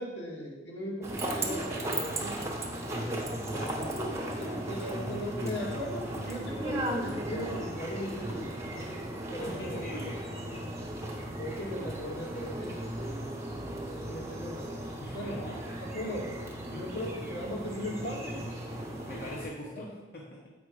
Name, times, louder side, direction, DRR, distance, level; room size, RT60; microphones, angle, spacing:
voice 1, 0.0-2.4 3.6-4.0 4.4-9.0 9.3-9.9 11.4-12.8 13.8-14.7 15.1-15.4 15.8-16.3 16.7-18.5 19.7-19.9, equal, 90° left, -3 dB, 2.1 m, -38 dB
sound 1, 1.0-19.5, right 1 dB, 15° right, 1.0 m, -36 dB
voice 2, 3.5-4.0 9.4-10.2 10.5-10.6 15.0-15.8 16.7-17.0 19.1-20.5, left 1 dB, 60° left, -3 dB, 1.0 m, -42 dB
7.5 x 5.2 x 4.9 m, 1.2 s
head